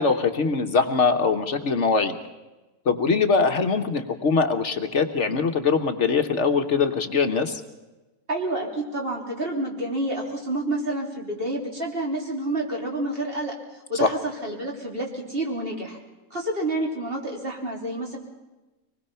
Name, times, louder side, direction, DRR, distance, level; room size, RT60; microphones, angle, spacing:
voice 1, 0.0-2.1 2.8-7.6 14.0-14.1, left 4 dB, 60° left, 7 dB, 1.4 m, -22 dB
voice 2, 8.3-13.5 13.9-16.0 16.3-18.2, right 1 dB, 40° right, -1 dB, 3.7 m, -29 dB
24.5 x 20.0 x 5.6 m, 1.1 s
omnidirectional pair, 1.4 m